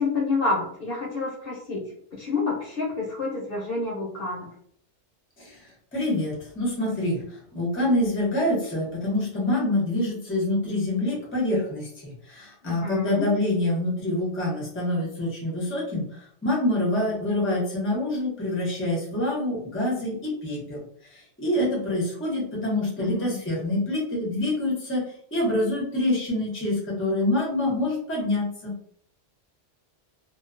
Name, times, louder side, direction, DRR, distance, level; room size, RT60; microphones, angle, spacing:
voice 1, 0.0-1.8 2.2-4.5 12.6-13.2 23.0-23.4 28.2-28.3, left 3 dB, 60° left, -4 dB, 0.8 m, -28 dB
voice 2, 5.9-7.2 7.5-20.8 21.1-25.0 25.3-28.7, left 1 dB, 15° left, -4 dB, 0.7 m, -26 dB
2.3 x 2.2 x 2.4 m, 0.64 s
omnidirectional pair, 1.2 m